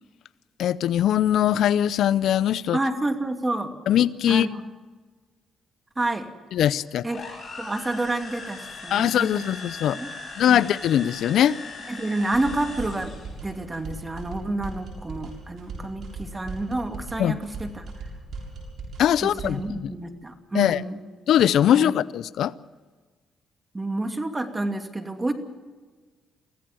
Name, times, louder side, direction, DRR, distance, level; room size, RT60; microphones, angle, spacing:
voice 1, 0.6-2.8 3.9-4.5 6.5-7.1 8.9-10.0 10.4-11.6 17.2-17.4 19.0-19.6 20.5-20.8 21.3-22.5, left 10 dB, 75° left, 0.6 m, -21 dB
voice 2, 2.7-3.7 4.3-4.6 6.0-6.3 7.0-7.3 7.6-9.4 9.8-10.1 10.5-10.7 11.9-13.2 13.4-18.1 19.2-21.0 21.7-21.9 23.7-25.3, right 2 dB, 20° right, 2.6 m, -29 dB
sound 1, 7.0-13.4, left 3 dB, 35° left, 6.7 m, -39 dB
sound 2, 12.3-19.7, right 3 dB, 65° right, 6.9 m, -38 dB
24.0 x 16.0 x 7.7 m
cardioid pair, 90°, 0 cm